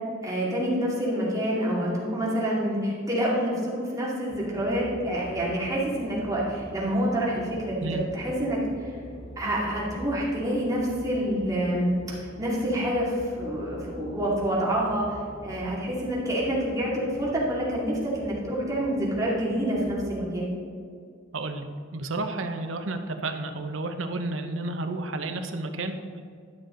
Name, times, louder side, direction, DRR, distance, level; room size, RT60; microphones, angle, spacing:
voice 1, 0.2-8.9 9.4-11.9 12.4-15.2 15.4-20.5, equal, 20° right, -6 dB, 2.4 m, -27 dB
sound 1, 4.3-20.1, equal, 30° left, 0.8 m, -44 dB
voice 2, 21.3-26.2, right 2 dB, 75° right, 7 dB, 0.8 m, -31 dB
12.0 x 6.7 x 3.8 m, 2.2 s
head